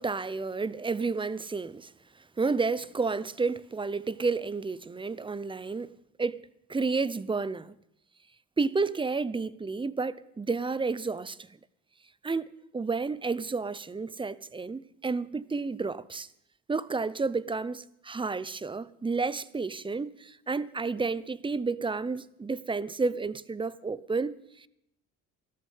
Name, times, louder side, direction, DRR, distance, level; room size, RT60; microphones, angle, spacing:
voice 1, 0.0-1.9 2.4-6.4 6.7-7.7 8.6-11.5 12.2-16.3 16.7-24.7, right 4 dB, 15° right, 0.6 m, -31 dB
14.5 x 13.0 x 5.5 m
cardioid pair, 100°, 32 cm